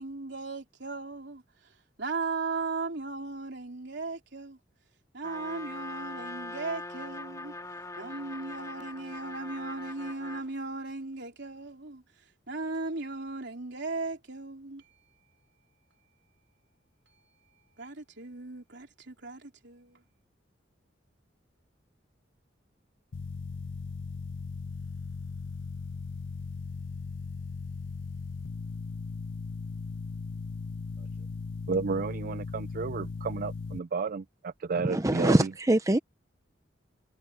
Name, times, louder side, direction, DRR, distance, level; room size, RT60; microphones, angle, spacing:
voice 1, 0.0-4.6 5.1-7.6 8.0-15.2 17.1-20.0, right 3 dB, 65° right, 3.7 m, -37 dB
Trumpet, 5.2-10.5, left 2 dB, 20° left, 2.8 m, -42 dB
sound 1, 23.1-33.8, left 4 dB, 80° left, 0.6 m, -38 dB
voice 2, 31.7-35.5, right 5 dB, 50° right, 0.4 m, -32 dB
voice 3, 34.8-36.0, right 1 dB, 15° right, 0.8 m, -23 dB
head